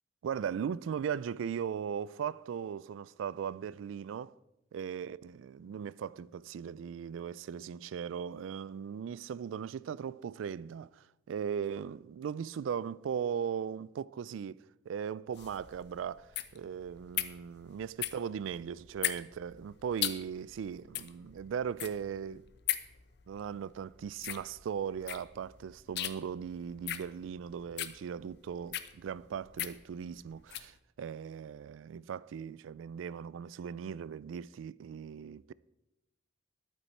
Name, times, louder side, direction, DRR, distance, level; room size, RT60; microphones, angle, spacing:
voice 1, 0.2-4.3 4.7-22.5 23.3-35.5, right 7 dB, 90° right, 0.3 m, -38 dB
sound 1, 15.3-30.7, left 12 dB, 60° left, 0.6 m, -39 dB
11.0 x 8.9 x 4.4 m
head